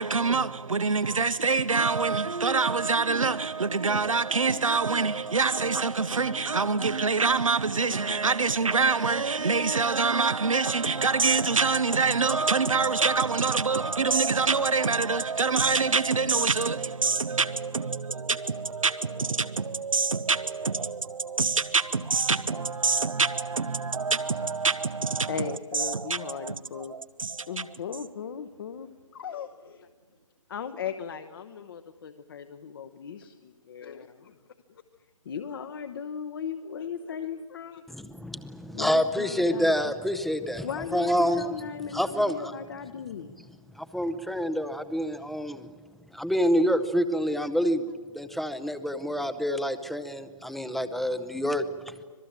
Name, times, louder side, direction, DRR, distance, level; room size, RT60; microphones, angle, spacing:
voice 1, 0.0-27.7, right 4 dB, 80° right, 0.7 m, -26 dB
voice 2, 25.3-26.9 27.5-29.7 30.5-34.1 35.3-37.8 38.7-39.9 40.6-43.4, left 7 dB, 45° left, 1.0 m, -37 dB
voice 3, 37.9-41.5 41.9-42.5 43.4-43.5 43.7-45.7 46.1-47.9 48.1-51.9, equal, ahead, 0.7 m, -27 dB
26.0 x 19.0 x 8.8 m
figure-of-eight pair, 135°, 17 cm